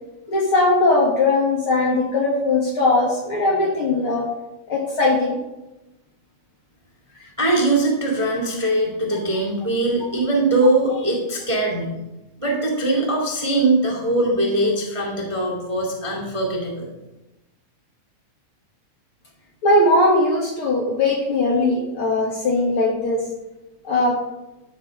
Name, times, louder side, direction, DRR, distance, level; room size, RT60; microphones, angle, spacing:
voice 1, 0.3-4.3 4.7-5.4 10.0-10.1 19.6-23.2 23.8-24.2, left 2 dB, 50° left, -2 dB, 2.1 m, -19 dB
voice 2, 7.4-11.9 12.4-16.9, right 2 dB, 15° right, -3 dB, 1.4 m, -21 dB
13.5 x 4.6 x 6.2 m, 0.98 s
omnidirectional pair, 3.7 m